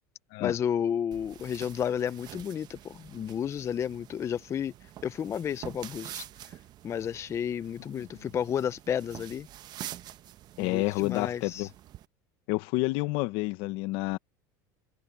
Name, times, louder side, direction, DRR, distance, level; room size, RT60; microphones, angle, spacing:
voice 1, 0.4-4.7 5.0-6.3 6.8-9.5 10.6-11.7, left 8 dB, 25° left, 0.5 m, -32 dB
sound 1, 1.1-12.1, right 12 dB, 40° right, 0.9 m, -47 dB
voice 2, 10.6-11.7 12.5-14.2, left 21 dB, 65° left, 1.0 m, -29 dB
supercardioid pair, 130°, 10 cm